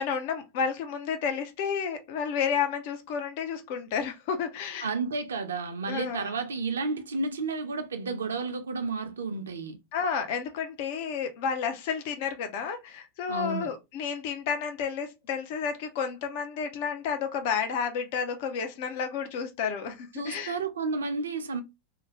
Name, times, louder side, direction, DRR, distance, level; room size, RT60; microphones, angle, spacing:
voice 1, 0.0-4.9 5.9-6.3 9.9-20.6, left 6 dB, 50° left, 0.5 m, -31 dB
voice 2, 4.8-9.8 13.3-13.7 20.2-21.6, right 4 dB, 70° right, 0.4 m, -31 dB
2.4 x 2.2 x 3.0 m
figure-of-eight pair, 90°, 0 cm